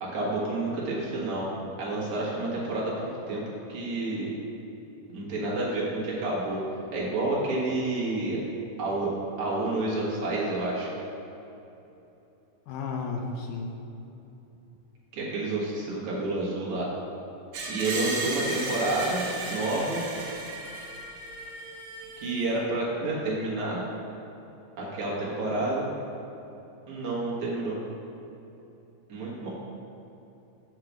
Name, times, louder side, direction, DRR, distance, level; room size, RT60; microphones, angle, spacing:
voice 1, 0.0-1.5 1.8-3.4 3.7-4.3 5.1-6.6 6.9-8.4 8.8-9.1 9.4-10.9 15.1-16.9 17.7-20.0 22.2-23.8 24.8-25.9 26.9-27.8 29.1-29.5, right 2 dB, 65° right, -5 dB, 3.0 m, -29 dB
voice 2, 12.7-13.8, left 4 dB, 75° left, 2 dB, 2.1 m, -33 dB
Screech, 17.5-22.5, right 2 dB, 90° right, 3.2 m, -35 dB
7.7 x 4.8 x 7.2 m, 2.9 s
omnidirectional pair, 3.7 m